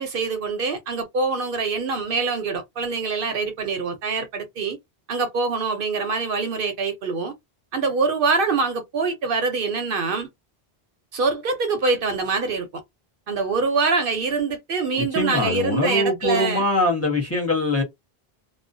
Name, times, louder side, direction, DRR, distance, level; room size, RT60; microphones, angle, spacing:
voice 1, 0.0-4.8 5.1-7.3 7.7-10.3 11.1-12.8 13.3-16.6, right 4 dB, 65° right, 0.7 m, -24 dB
voice 2, 15.0-17.8, left 2 dB, 15° left, 0.8 m, -22 dB
2.4 x 2.1 x 2.5 m
omnidirectional pair, 1.0 m